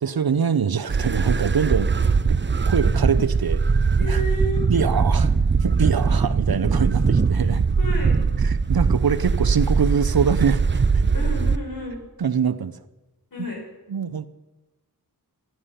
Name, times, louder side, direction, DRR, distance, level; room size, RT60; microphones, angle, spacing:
voice 1, 0.0-2.4 2.7-3.6 4.0-4.2 4.7-5.3 5.6-7.7 8.4-11.1 12.2-12.7 13.4-13.5 13.9-14.3, right 6 dB, 65° right, 13 dB, 0.7 m, -24 dB
sound 1, 0.9-11.6, right 5 dB, 30° right, 0.5 m, -21 dB
voice 2, 4.0-4.6 7.8-8.2 11.1-12.0 13.3-13.6, equal, 55° left, -1 dB, 5.1 m, -31 dB
15.5 x 11.5 x 5.6 m, 1.1 s
wide cardioid pair, 75°, 39 cm